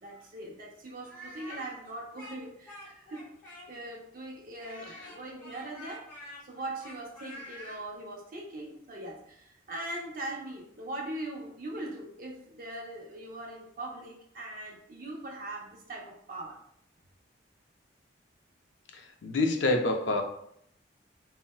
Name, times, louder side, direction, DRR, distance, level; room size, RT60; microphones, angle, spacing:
voice 1, 0.0-6.1 6.4-16.6, right 1 dB, 45° right, -2 dB, 0.6 m, -41 dB
Speech, 1.0-3.9 4.5-7.8, left 1 dB, 10° left, 0.8 m, -47 dB
voice 2, 18.9-20.2, left 2 dB, 70° left, 4 dB, 0.4 m, -27 dB
3.8 x 2.1 x 2.2 m, 0.70 s
head